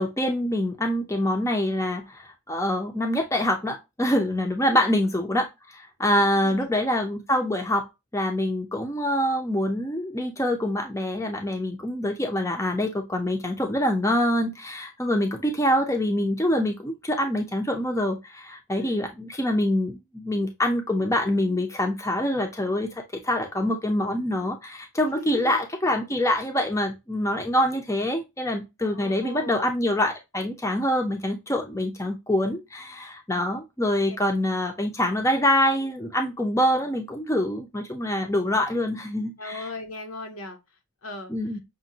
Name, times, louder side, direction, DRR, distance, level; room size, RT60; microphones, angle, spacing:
voice 1, 0.0-7.9 8.1-39.7 41.3-41.6, left 1 dB, 15° left, 0.6 m, -25 dB
voice 2, 4.6-5.0 6.3-6.9 18.8-19.0 25.2-25.6 28.8-29.7 39.4-40.6 41.0-41.3, left 3 dB, 70° left, 0.9 m, -38 dB
6.0 x 2.2 x 2.7 m
head